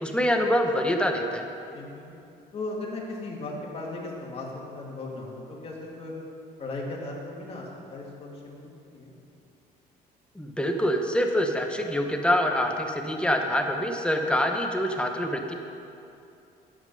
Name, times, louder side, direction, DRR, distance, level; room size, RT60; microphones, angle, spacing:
voice 1, 0.0-1.5 10.4-15.5, equal, 5° left, 3 dB, 0.8 m, -25 dB
voice 2, 1.7-2.1 2.5-6.1 6.6-9.2, left 2 dB, 35° left, -3 dB, 2.1 m, -37 dB
9.5 x 7.5 x 5.3 m, 2.7 s
cardioid pair, 110°, 17 cm